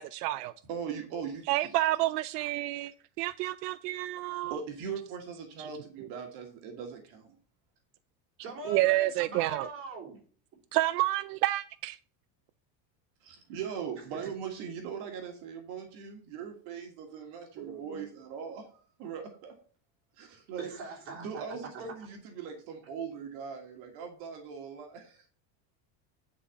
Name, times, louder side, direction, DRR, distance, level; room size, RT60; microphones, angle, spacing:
voice 1, 0.0-0.5 1.5-4.6 5.6-5.7 8.7-9.7 10.7-12.0, right 17 dB, 75° right, 0.6 m, -29 dB
voice 2, 0.7-1.7 4.4-7.4 13.2-19.6 20.1-20.7 21.1-25.3, right 6 dB, 50° right, 1.7 m, -40 dB
voice 3, 8.4-10.2 17.6-18.0 20.6-21.4 21.7-21.8, right 3 dB, 25° right, 3.4 m, -42 dB
9.8 x 4.2 x 6.9 m
cardioid pair, 180°, 47 cm